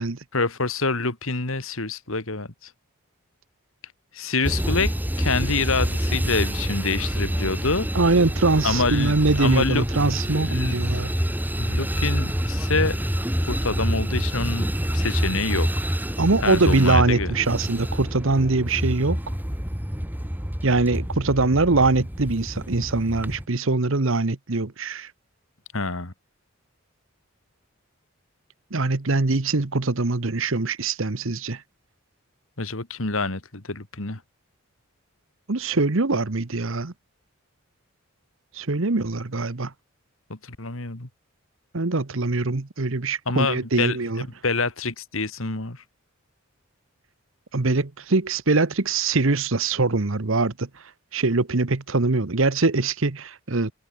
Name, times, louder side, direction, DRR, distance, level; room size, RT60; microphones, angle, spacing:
voice 1, 0.3-2.7 4.1-7.9 8.6-9.9 10.4-10.8 11.6-13.0 13.4-14.7 14.9-15.7 16.4-17.3 25.7-26.1 32.6-34.2 40.3-41.1 43.3-45.8, left 3 dB, 70° left, 2.6 m, -26 dB
sound 1, 4.4-23.4, equal, 10° right, 1.9 m, -27 dB
voice 2, 7.9-11.1 16.2-19.2 20.6-25.1 28.7-31.6 35.5-36.9 38.5-39.7 41.7-44.2 47.5-50.7 51.1-53.7, right 3 dB, 65° right, 1.1 m, -23 dB
head